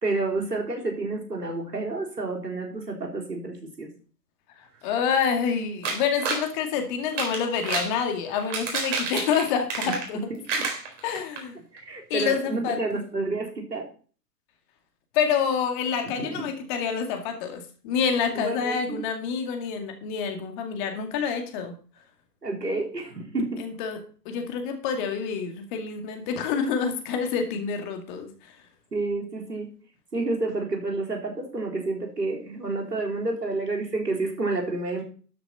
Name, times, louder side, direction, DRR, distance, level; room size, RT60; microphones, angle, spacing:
voice 1, 0.0-3.9 9.8-9.9 10.3-10.6 11.7-13.9 16.2-16.5 18.3-19.0 22.4-23.7 28.9-29.7 30.1-35.0, right 2 dB, 75° right, 1 dB, 3.9 m, -29 dB
voice 2, 4.8-10.3 11.0-11.6 12.1-12.8 15.1-21.7 23.6-24.0 24.3-28.3, left 6 dB, 30° left, 6 dB, 2.1 m, -27 dB
sound 1, 5.8-6.5 7.0-7.9 8.4-10.2 10.5-11.4 11.8-11.9 12.2-12.3, right 4 dB, 50° right, 4.3 m, -29 dB
12.5 x 7.1 x 5.5 m, 0.41 s
figure-of-eight pair, 115°, 48 cm